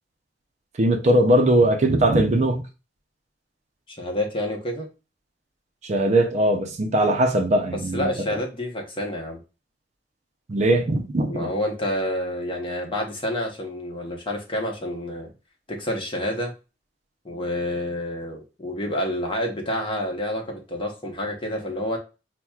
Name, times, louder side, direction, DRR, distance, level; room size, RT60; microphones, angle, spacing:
voice 1, 0.8-2.7 5.8-8.4 10.5-11.5, right 1 dB, 40° right, 0.5 m, -20 dB
voice 2, 3.9-4.9 7.7-9.4 11.2-15.3 15.7-16.5 17.2-22.0, left 1 dB, 30° left, 0.9 m, -28 dB
5.8 x 2.1 x 2.3 m
head